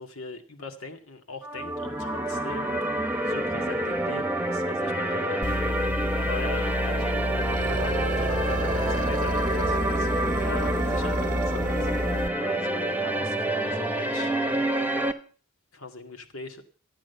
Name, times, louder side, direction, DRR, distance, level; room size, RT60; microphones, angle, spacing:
voice 1, 0.0-2.8 3.2-5.4 6.1-11.9 12.3-14.6 15.7-16.6, left 4 dB, 85° left, 5 dB, 2.0 m, -40 dB
sound 1, 1.4-15.1, right 1 dB, 10° right, 1.0 m, -28 dB
sound 2, 5.4-12.3, left 1 dB, 25° left, 1.5 m, -30 dB
sound 3, 7.3-12.4, right 4 dB, 40° right, 0.7 m, -34 dB
13.5 x 9.0 x 6.8 m, 0.40 s
head